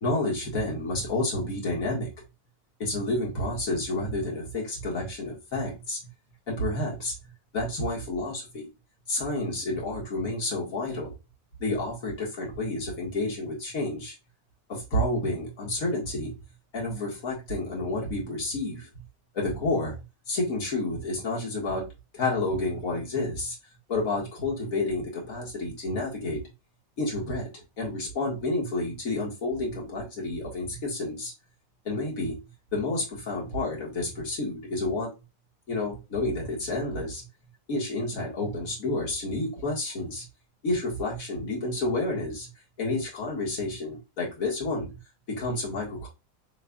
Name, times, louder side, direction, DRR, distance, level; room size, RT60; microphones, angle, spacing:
voice 1, 0.0-2.1 2.8-6.0 6.5-7.1 7.5-8.7 9.1-11.1 11.6-14.1 14.7-16.3 16.7-18.9 19.3-21.8 22.1-23.6 23.9-26.4 27.0-31.3 31.9-32.4 32.7-35.1 35.7-37.2 37.7-40.2 40.6-42.5 42.8-45.0 45.4-46.1, left 2 dB, 50° left, -3 dB, 2.1 m, -30 dB
6.6 x 3.0 x 2.4 m, 0.27 s
omnidirectional pair, 2.0 m